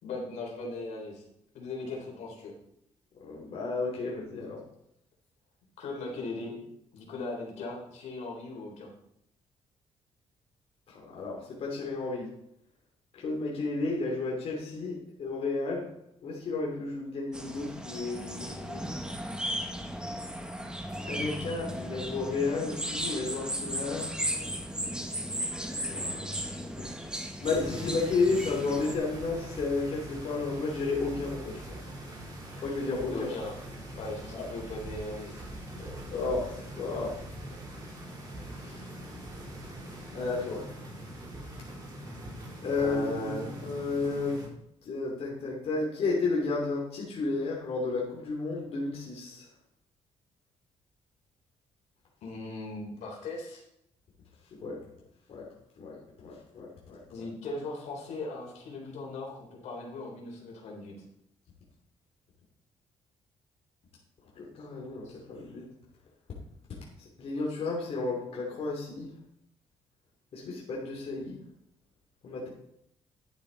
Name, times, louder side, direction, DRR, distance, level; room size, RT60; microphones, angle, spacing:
voice 1, 0.0-1.2 1.5-2.5 5.8-6.6 6.9-8.9 33.1-33.5 34.0-35.4 35.7-36.0 42.8-43.5 52.2-53.6 57.1-60.9 65.0-65.2, left 2 dB, 80° left, -1 dB, 3.7 m, -38 dB
voice 2, 3.2-4.6 10.9-12.3 13.1-15.9 16.2-18.9 21.0-24.1 25.8-26.3 26.8-26.9 27.4-31.8 32.5-33.3 34.3-34.4 36.1-37.2 38.6-38.8 40.1-40.7 42.6-44.4 44.8-49.5 54.5-54.8 55.3-55.4 55.8-57.3 64.4-65.6 67.2-69.1 70.3-71.4 72.2-72.5, left 3 dB, 60° left, -3 dB, 3.0 m, -32 dB
sound 1, 17.3-28.9, equal, 5° right, 1.4 m, -36 dB
sound 2, 27.4-44.5, right 1 dB, 35° right, 4.2 m, -43 dB
11.5 x 8.6 x 4.0 m, 0.75 s
cardioid pair, 110°, 12 cm